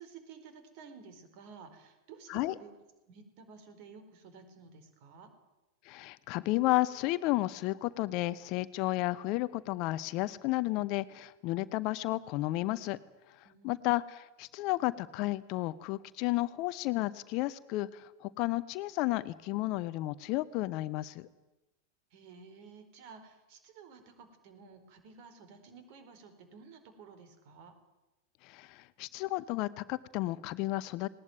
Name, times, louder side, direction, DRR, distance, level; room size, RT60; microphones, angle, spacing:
voice 1, 0.0-2.7 3.1-5.3 13.4-13.9 22.1-27.7, right 5 dB, 45° right, 9 dB, 4.5 m, -53 dB
voice 2, 5.9-13.0 13.6-21.3 28.4-31.1, left 18 dB, 40° left, 17 dB, 0.8 m, -32 dB
19.5 x 19.5 x 9.4 m, 1.0 s
figure-of-eight pair, 90°, 0 cm